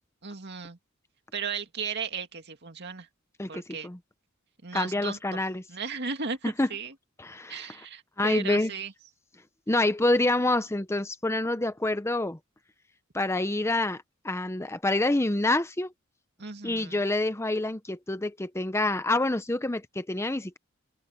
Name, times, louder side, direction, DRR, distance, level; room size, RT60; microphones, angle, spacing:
voice 1, 0.2-0.8 1.3-3.1 3.5-3.9 4.6-5.4 5.7-6.9 7.5-8.9 16.4-17.0, right 5 dB, 55° right, 2.4 m, -36 dB
voice 2, 3.4-4.0 4.7-5.6 6.4-6.7 7.2-7.7 8.2-8.7 9.7-12.4 13.1-15.9 16.6-20.6, left 2 dB, 15° left, 0.8 m, -27 dB
open air
head